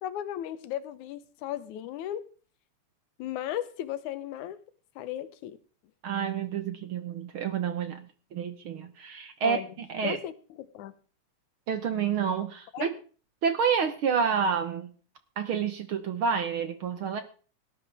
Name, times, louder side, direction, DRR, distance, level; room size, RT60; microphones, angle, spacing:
voice 1, 0.0-2.3 3.2-4.6 5.0-5.6 9.4-9.7 10.0-10.3 10.6-10.9 12.7-12.9, left 12 dB, 90° left, 2.4 m, -35 dB
voice 2, 6.0-10.2 11.7-12.9 13.4-14.9 15.4-17.2, right 6 dB, 60° right, 1.5 m, -29 dB
17.5 x 12.0 x 3.5 m
omnidirectional pair, 3.3 m